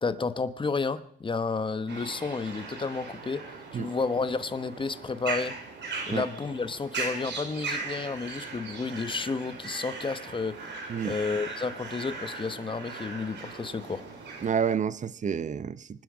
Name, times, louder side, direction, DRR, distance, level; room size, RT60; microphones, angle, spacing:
voice 1, 0.0-3.4 3.7-5.5 6.1-10.7 11.0-14.0, left 4 dB, 25° left, 1.1 m, -31 dB
sound 1, 1.9-14.8, right 4 dB, 65° right, 3.9 m, -38 dB
voice 2, 14.4-16.0, right 7 dB, 40° right, 0.7 m, -29 dB
25.0 x 10.0 x 5.0 m
cardioid pair, 90°, 20 cm